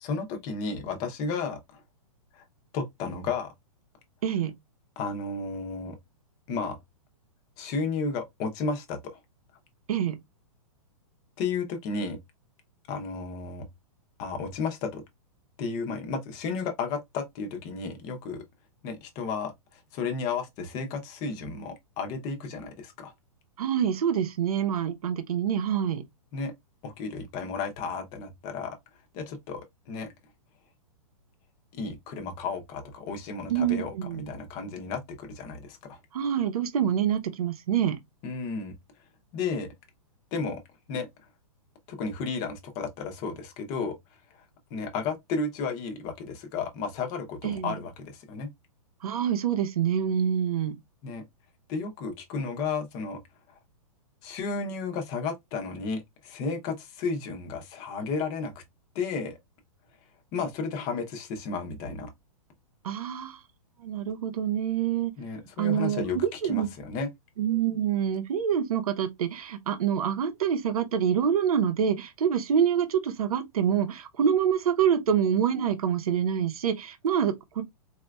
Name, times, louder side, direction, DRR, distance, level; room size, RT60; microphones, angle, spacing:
voice 1, 0.0-1.8 2.3-2.4 2.7-3.5 5.0-6.0 6.5-6.8 7.6-9.2 11.4-12.2 12.9-13.7 14.2-15.0 15.6-18.4 18.8-23.1 26.3-26.5 26.8-28.8 29.1-30.1 31.7-36.0 38.2-38.7 39.3-39.7 40.3-40.6 40.9-41.1 41.9-44.0 44.7-48.5 51.0-51.2 51.7-53.2 54.2-58.6 58.9-59.4 60.3-62.1 65.2-67.1, left 4 dB, 20° left, 0.5 m, -33 dB
voice 2, 4.2-4.5 9.9-10.2 23.6-26.0 33.5-34.3 36.1-38.0 47.4-47.8 49.0-50.8 62.8-63.4 63.8-65.1 65.6-66.7 67.4-77.6, right 8 dB, 75° right, 0.8 m, -26 dB
4.1 x 2.3 x 2.2 m
hypercardioid pair, 165°, 19 cm